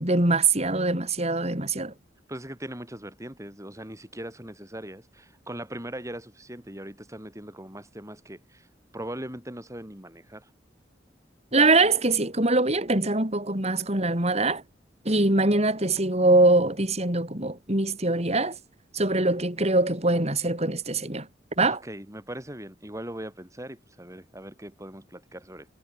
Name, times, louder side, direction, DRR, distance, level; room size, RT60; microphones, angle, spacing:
voice 1, 0.0-1.9 11.5-14.6 15.1-18.6 18.9-21.3 21.6-21.8, right 2 dB, 35° right, 5.5 m, -23 dB
voice 2, 2.3-8.7 8.9-10.5 21.6-25.7, right 1 dB, 15° right, 6.9 m, -40 dB
head